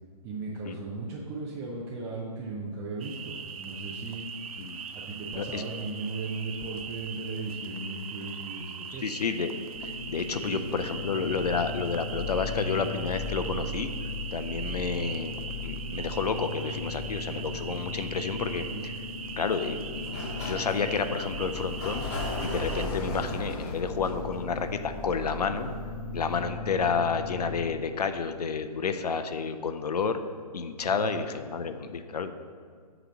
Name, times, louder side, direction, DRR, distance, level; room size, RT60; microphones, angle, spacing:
voice 1, 0.2-4.3 4.9-9.1 10.4-10.6 14.6-14.9 17.3-17.4 18.7-18.8 30.9-31.2, right 3 dB, 15° right, -4 dB, 0.4 m, -37 dB
sound 1, 3.0-22.9, right 6 dB, 60° right, 0.6 m, -41 dB
voice 2, 8.9-13.9 14.3-18.6 19.4-22.0 22.4-25.7 26.1-30.2 30.5-32.3, left 5 dB, 75° left, 9 dB, 0.5 m, -30 dB
sound 2, 9.7-27.6, left 2 dB, 30° right, 1.1 m, -37 dB
Sliding door, 19.9-25.6, left 2 dB, 40° left, 1.5 m, -37 dB
8.0 x 3.0 x 6.2 m, 2.1 s
hypercardioid pair, 140°, 20 cm